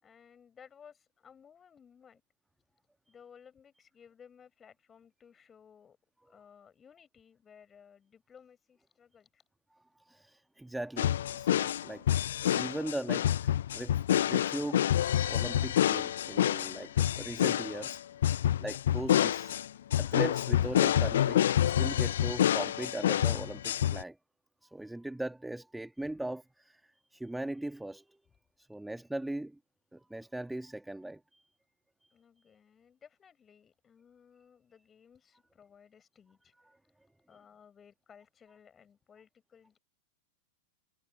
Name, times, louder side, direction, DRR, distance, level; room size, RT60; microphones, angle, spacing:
voice 1, 0.0-2.2 3.1-6.0 6.2-9.4 26.0-26.1 32.1-36.5 37.3-39.8, left 7 dB, 20° left, 5.2 m, -58 dB
voice 2, 10.1-12.1 12.5-14.0 14.3-14.9 15.3-18.1 18.6-19.5 20.0-24.2 24.6-28.2 28.6-29.6 29.9-31.4, right 1 dB, 5° right, 1.9 m, -39 dB
sound 1, 11.0-24.0, left 11 dB, 60° left, 0.3 m, -28 dB
figure-of-eight pair, 90°, 0 cm